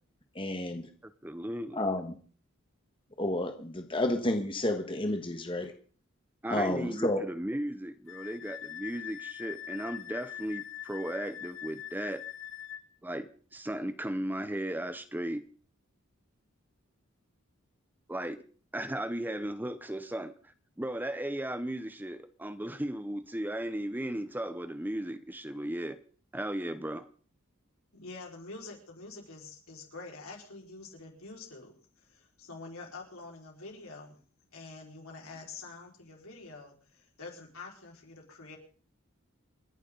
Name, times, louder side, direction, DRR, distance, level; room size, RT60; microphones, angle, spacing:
voice 1, 0.3-0.9 1.7-2.1 3.2-5.7 6.5-7.2, left 1 dB, 25° left, 1.4 m, -30 dB
voice 2, 1.0-1.9 6.4-12.2 13.0-15.5 18.1-18.4 18.7-26.0 26.3-27.1, right 1 dB, 10° right, 0.7 m, -36 dB
Wind instrument woodwind instrument, 8.1-12.8, left 11 dB, 70° left, 2.1 m, -42 dB
voice 3, 27.9-34.2 34.5-38.6, left 3 dB, 90° left, 4.8 m, -46 dB
28.5 x 11.0 x 3.9 m
head